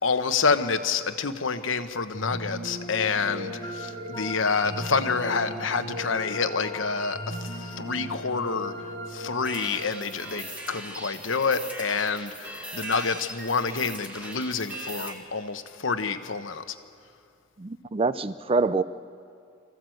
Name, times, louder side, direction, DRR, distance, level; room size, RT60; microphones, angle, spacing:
voice 1, 0.0-8.7 9.1-16.8, left 5 dB, 85° left, 9 dB, 1.1 m, -28 dB
sound 1, 2.1-11.3, equal, 65° right, 2.7 m, -37 dB
sound 2, 9.4-15.1, right 1 dB, 10° right, 1.9 m, -39 dB
voice 2, 17.6-18.8, right 3 dB, 30° right, 14 dB, 0.5 m, -25 dB
24.5 x 15.0 x 7.8 m, 2.4 s
head